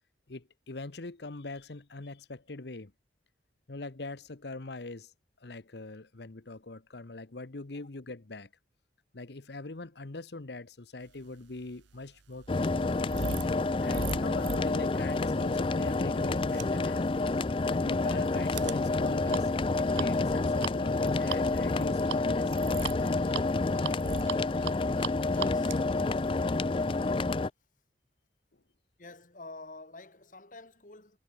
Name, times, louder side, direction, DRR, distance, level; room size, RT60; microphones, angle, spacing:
voice 1, 0.3-2.9 3.7-5.1 5.4-8.5 9.1-13.2 13.8-17.1 17.7-19.5 19.8-23.1 24.5-24.6, left 2 dB, 65° left, 1.0 m, -42 dB
sound 1, 11.5-27.1, right 6 dB, 80° right, 0.6 m, -41 dB
sound 2, 12.5-27.5, left 3 dB, 30° left, 0.4 m, -29 dB
voice 2, 25.3-25.8 27.4-27.5 29.0-31.2, left 2 dB, 45° left, 2.0 m, -48 dB
head